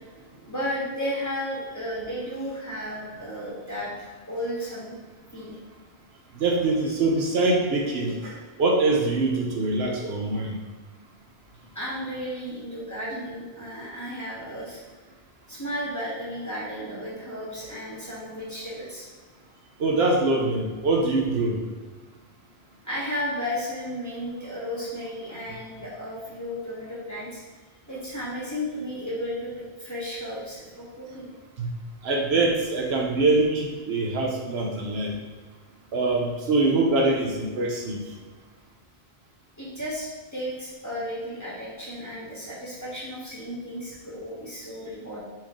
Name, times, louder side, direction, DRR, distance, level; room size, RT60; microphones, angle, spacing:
voice 1, 0.5-5.0 5.3-5.6 11.7-14.8 15.5-19.1 22.8-27.4 27.9-31.3 39.6-45.2, equal, 15° left, -8 dB, 1.2 m, -34 dB
voice 2, 6.3-10.6 19.8-21.6 31.6-31.7 32.0-35.1 35.9-38.0, right 2 dB, 80° right, 0 dB, 1.0 m, -24 dB
4.6 x 3.1 x 3.6 m, 1.4 s
omnidirectional pair, 1.0 m